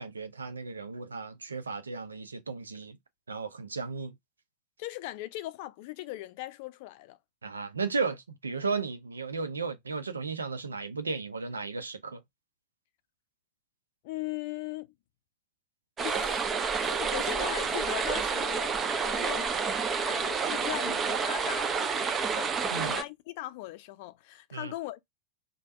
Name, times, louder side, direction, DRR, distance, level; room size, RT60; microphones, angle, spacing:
voice 1, 0.0-3.0 3.3-4.1 7.4-12.2 22.7-23.0 24.5-24.7, right 4 dB, 75° right, 0.6 m, -35 dB
voice 2, 4.8-7.2 14.0-14.9 16.0-16.4 16.8-18.7 19.0-25.0, left 17 dB, 50° left, 0.5 m, -39 dB
sound 1, 16.0-23.0, right 5 dB, 20° right, 0.6 m, -29 dB
3.3 x 2.2 x 4.1 m
figure-of-eight pair, 90°, 0 cm